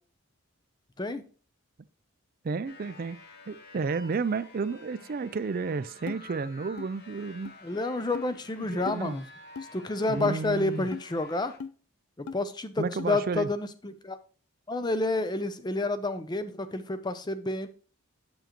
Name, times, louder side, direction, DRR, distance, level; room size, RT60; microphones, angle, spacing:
voice 1, 2.4-3.2 3.5-7.5 8.6-9.2 10.1-10.9 12.8-13.5, right 4 dB, 40° right, 14 dB, 0.3 m, -32 dB
sound 1, 2.6-11.6, left 2 dB, 45° left, 1.1 m, -51 dB
sound 2, 6.1-6.2 6.8-6.9 7.4-7.5 8.1-8.3 8.9-9.0 9.5-9.7 10.2-10.4 10.9-11.1 11.6-11.7 12.3-12.4 13.0-13.1, left 5 dB, 85° left, 0.4 m, -38 dB
voice 2, 7.6-9.3 9.7-11.5 12.2-14.2 14.7-17.7, left 2 dB, 20° left, 12 dB, 0.5 m, -29 dB
7.6 x 7.0 x 3.0 m, 0.40 s
head